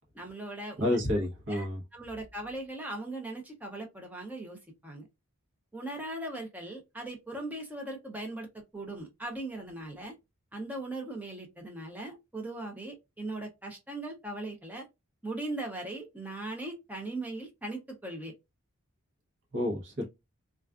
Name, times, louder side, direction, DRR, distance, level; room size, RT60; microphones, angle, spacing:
voice 1, 0.1-1.0 1.5-1.7 1.9-5.1 5.7-8.5 8.7-10.1 10.5-14.9 15.2-18.3, right 2 dB, 5° right, 0.6 m, -39 dB
voice 2, 0.8-1.8 19.5-20.0, left 1 dB, 55° right, 0.8 m, -29 dB
2.4 x 2.3 x 2.3 m
head